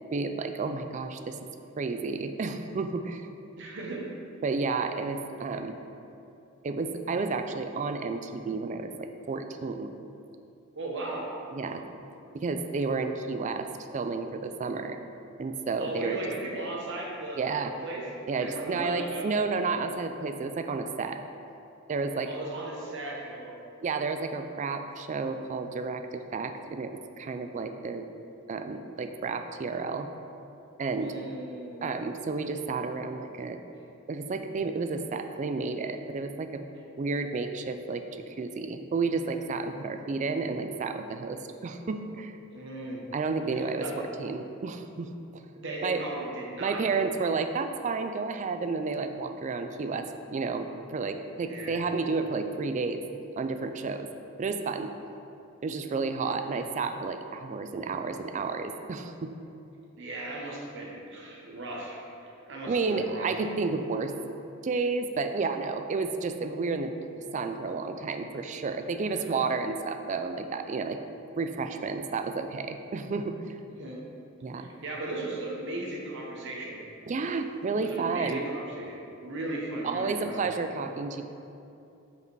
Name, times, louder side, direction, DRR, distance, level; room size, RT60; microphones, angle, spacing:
voice 1, 0.1-1.4 1.8-3.3 4.4-5.8 6.6-9.9 11.5-11.8 12.3-13.7 13.9-15.0 15.4-16.2 17.4-17.7 18.3-21.2 21.9-22.3 23.8-28.1 28.5-30.1 30.8-31.1 31.8-33.6 34.1-36.6 37.0-42.3 43.1-45.4 45.8-46.0 46.6-53.0 53.4-54.1 54.4-54.9 55.6-59.3 62.7-64.1 64.6-66.9 67.3-71.0 71.4-73.4 74.4-74.7 77.1-78.4 79.8-81.2, right 4 dB, 35° right, 7 dB, 0.3 m, -31 dB
voice 2, 3.6-4.0 5.5-5.6 10.8-11.3 15.8-18.0 18.4-19.3 22.2-23.6 30.9-31.8 42.5-43.0 43.5-44.0 45.5-47.1 51.4-51.8 59.9-62.0 62.5-63.4 68.9-69.3 73.8-74.0 74.6-76.8 77.7-80.4, right 2 dB, 60° right, -3 dB, 1.1 m, -37 dB
5.3 x 5.0 x 4.6 m, 2.8 s
head